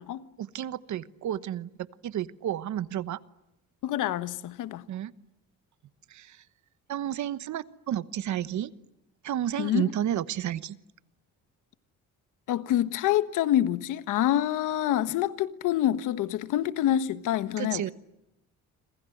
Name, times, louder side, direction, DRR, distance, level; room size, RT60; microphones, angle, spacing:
voice 1, 0.4-1.7 2.0-3.2 4.9-5.1 6.1-6.4 6.9-8.7 9.2-10.8 17.6-17.9, right 11 dB, 70° right, 1.2 m, -31 dB
voice 2, 3.8-4.8 9.6-9.9 12.5-17.9, left 12 dB, 90° left, 1.4 m, -26 dB
28.0 x 26.0 x 7.9 m
cardioid pair, 90°, 30 cm